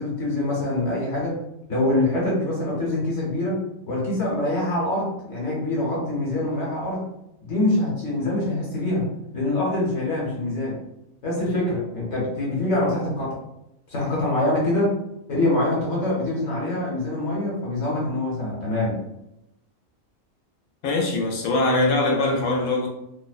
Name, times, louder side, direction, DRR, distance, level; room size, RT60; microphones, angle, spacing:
voice 1, 0.0-1.4 1.7-7.0 7.4-9.0 9.3-10.8 11.2-13.4 13.9-15.0 15.3-19.0, left 1 dB, 60° left, -4 dB, 1.2 m, -24 dB
voice 2, 20.8-22.9, left 2 dB, 90° left, 0 dB, 1.0 m, -22 dB
2.7 x 2.1 x 2.3 m, 0.84 s
omnidirectional pair, 1.4 m